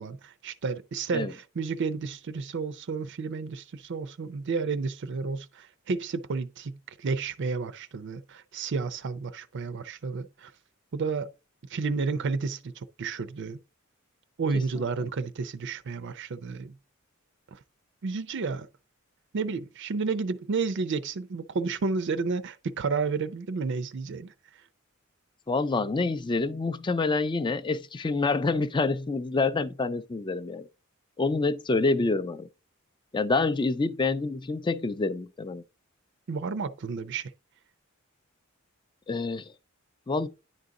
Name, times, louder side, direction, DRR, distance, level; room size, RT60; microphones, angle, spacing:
voice 1, 0.0-10.5 10.9-11.3 11.7-13.6 14.4-16.7 17.5-17.6 18.0-18.7 19.3-24.3 36.3-37.3, right 4 dB, 55° right, 0.5 m, -31 dB
voice 2, 25.5-30.7 31.2-32.5 33.1-35.6 39.1-39.5 40.1-40.3, left 3 dB, 20° left, 0.4 m, -27 dB
10.0 x 4.0 x 3.6 m
head